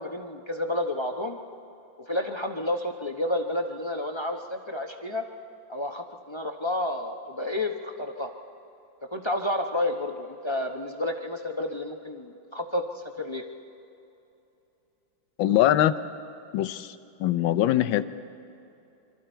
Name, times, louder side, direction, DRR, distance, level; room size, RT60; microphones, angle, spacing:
voice 1, 0.0-1.4 2.1-5.2 5.7-8.3 9.1-12.8 13.2-13.4, left 1 dB, 25° left, 3 dB, 0.6 m, -30 dB
voice 2, 15.4-16.0 16.5-18.0, left 12 dB, 85° left, 12 dB, 1.5 m, -23 dB
26.5 x 24.5 x 4.5 m, 2.8 s
omnidirectional pair, 2.1 m